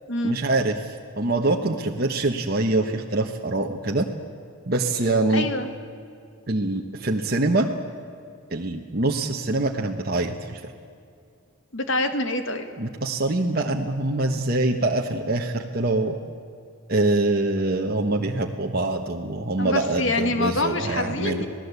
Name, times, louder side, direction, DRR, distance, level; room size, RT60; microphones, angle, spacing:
voice 1, 0.2-4.1 4.7-5.5 6.5-7.7 8.5-10.7 12.8-16.1 16.9-21.5, right 2 dB, 45° right, 1 dB, 1.3 m, -24 dB
voice 2, 5.3-5.7 11.7-12.6 19.6-21.5, left 2 dB, 60° left, 8 dB, 1.9 m, -26 dB
27.0 x 18.0 x 8.3 m, 2.4 s
head